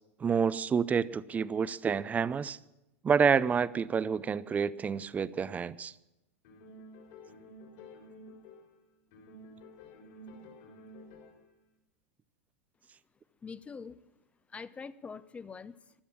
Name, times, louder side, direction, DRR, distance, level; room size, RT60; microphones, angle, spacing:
voice 1, 0.2-2.6 3.0-5.9, right 6 dB, 20° right, 0.6 m, -28 dB
sound 1, 6.4-8.8 9.1-11.5, left 1 dB, 65° left, 4.6 m, -51 dB
voice 2, 13.4-14.0 14.5-15.9, left 5 dB, 15° left, 0.7 m, -44 dB
16.0 x 11.5 x 7.2 m
hypercardioid pair, 110°, 7 cm